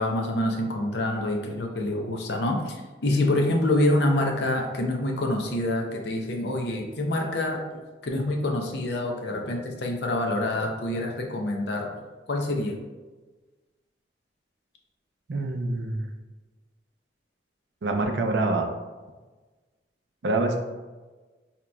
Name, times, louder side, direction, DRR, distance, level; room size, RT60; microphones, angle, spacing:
voice 1, 0.0-11.9 12.3-12.8, left 1 dB, 70° left, 1 dB, 0.6 m, -26 dB
voice 2, 15.3-16.1 17.8-18.7 20.2-20.6, right 2 dB, 75° right, 3 dB, 0.5 m, -25 dB
5.0 x 2.8 x 2.3 m, 1.3 s
head